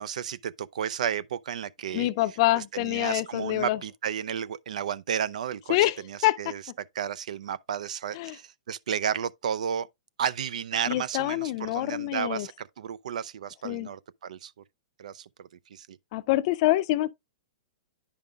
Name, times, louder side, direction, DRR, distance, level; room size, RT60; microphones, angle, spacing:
voice 1, 0.0-2.1 2.5-5.8 6.0-9.9 10.2-14.5 15.0-16.0, right 8 dB, 80° right, 0.4 m, -33 dB
voice 2, 1.9-3.8 5.7-5.9 6.2-6.4 8.2-8.3 10.9-12.5 13.6-13.9 16.1-17.1, left 17 dB, 45° left, 0.4 m, -26 dB
9.8 x 5.2 x 2.3 m
hypercardioid pair, 150°, 4 cm